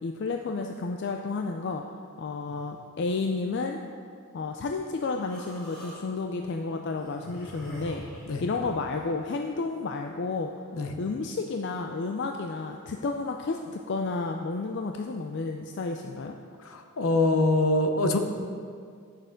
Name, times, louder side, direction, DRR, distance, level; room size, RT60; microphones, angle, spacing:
voice 1, 0.0-1.8 2.2-3.8 4.3-8.0 8.4-10.5 11.0-16.4, left 3 dB, 50° left, 3 dB, 0.4 m, -31 dB
Human voice, 5.2-6.0 6.9-8.9, left 1 dB, 5° left, 2.0 m, -42 dB
voice 2, 16.6-18.2, left 2 dB, 70° left, 5 dB, 0.8 m, -24 dB
8.6 x 6.5 x 5.1 m, 2.2 s
head